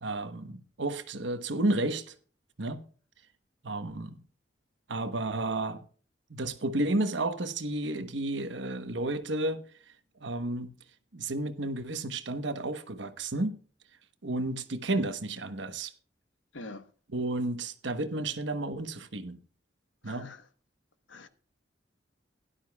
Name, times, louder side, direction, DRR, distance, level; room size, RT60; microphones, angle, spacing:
voice 1, 0.0-2.1 2.6-2.8 3.6-4.2 4.9-5.8 6.3-9.6 10.2-10.7 11.1-13.6 14.2-15.9 17.1-19.4 20.0-20.3, right 2 dB, 75° right, 1.1 m, -32 dB
voice 2, 16.5-16.9 20.0-20.4 21.1-21.3, left 2 dB, 85° left, 1.1 m, -44 dB
16.5 x 11.5 x 2.3 m
head